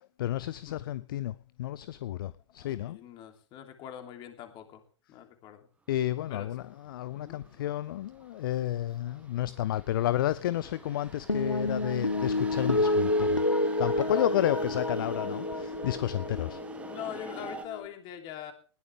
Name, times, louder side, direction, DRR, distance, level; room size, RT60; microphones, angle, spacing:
voice 1, 0.2-3.0 5.9-13.4 13.8-16.6, left 13 dB, 45° left, 0.6 m, -31 dB
voice 2, 2.5-4.8 5.1-5.7 6.3-6.5 7.2-7.4 13.9-14.2 16.9-18.5, left 10 dB, 30° left, 3.0 m, -43 dB
sound 1, 6.0-17.6, right 3 dB, 10° right, 1.5 m, -46 dB
sound 2, 11.3-17.9, left 1 dB, 90° left, 1.0 m, -29 dB
19.5 x 13.5 x 3.5 m
figure-of-eight pair, 105°, 15 cm